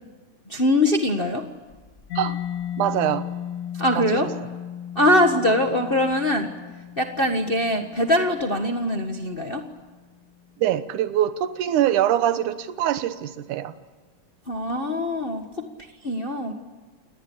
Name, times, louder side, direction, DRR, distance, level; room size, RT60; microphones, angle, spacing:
voice 1, 0.5-1.4 3.7-4.3 4.9-6.5 7.0-9.6 14.5-15.4 16.0-16.5, left 1 dB, 40° left, 4 dB, 0.8 m, -22 dB
Mallet percussion, 2.1-9.6, left 10 dB, 75° left, 3.3 m, -35 dB
voice 2, 2.8-3.3 4.0-4.3 10.6-13.7, right 11 dB, 75° right, 11 dB, 2.6 m, -23 dB
29.0 x 19.5 x 8.5 m, 1.3 s
omnidirectional pair, 3.7 m